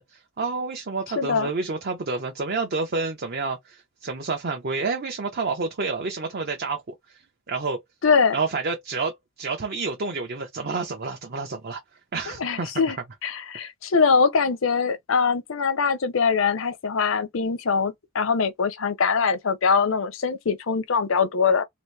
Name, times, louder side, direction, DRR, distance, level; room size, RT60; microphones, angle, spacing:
voice 1, 0.0-7.8 8.3-11.8 12.1-12.7, right 4 dB, 50° right, 0.7 m, -29 dB
voice 2, 1.2-1.5 8.0-8.4 12.4-13.0 13.2-21.6, left 5 dB, 65° left, 0.6 m, -22 dB
2.9 x 2.6 x 3.3 m
head